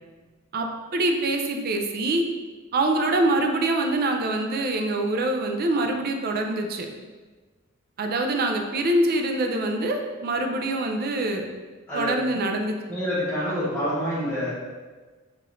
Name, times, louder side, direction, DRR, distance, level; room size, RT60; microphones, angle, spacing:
voice 1, 0.9-2.2 2.7-6.9 8.0-11.4 11.9-12.8, right 2 dB, 45° right, 4 dB, 0.4 m, -24 dB
voice 2, 11.9-12.5 12.9-14.5, equal, 10° left, -11 dB, 0.8 m, -27 dB
4.7 x 2.5 x 3.1 m, 1.3 s
head